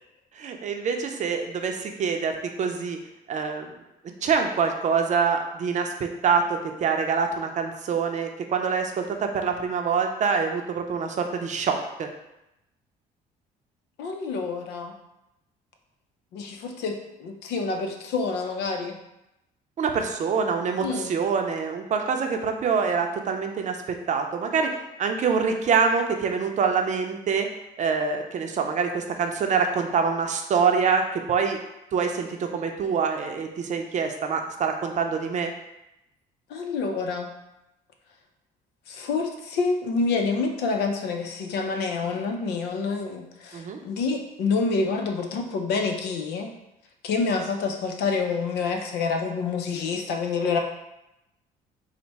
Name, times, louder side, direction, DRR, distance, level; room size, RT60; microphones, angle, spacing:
voice 1, 0.4-3.0 3.3-3.7 4.2-12.1 19.8-24.7 25.0-27.5 27.8-31.6 31.9-35.5 43.5-43.8, right 5 dB, 45° right, 4 dB, 0.6 m, -25 dB
voice 2, 14.0-14.9 16.3-19.0 20.8-21.1 36.5-37.3 38.9-46.5 47.0-50.6, left 4 dB, 80° left, 4 dB, 0.6 m, -27 dB
4.0 x 2.1 x 4.5 m, 0.89 s
cardioid pair, 110°, 17 cm